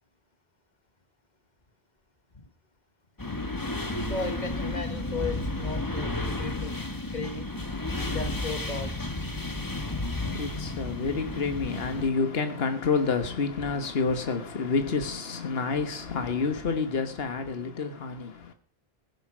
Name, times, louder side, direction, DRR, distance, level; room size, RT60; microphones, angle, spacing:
sound 1, 3.2-12.1, left 2 dB, 20° left, 1.5 m, -32 dB
voice 1, 3.8-6.8 7.1-7.5 8.1-9.0, left 3 dB, 45° left, 1.8 m, -36 dB
voice 2, 10.2-18.5, left 4 dB, 70° left, 1.6 m, -29 dB
16.0 x 10.0 x 6.2 m
omnidirectional pair, 1.0 m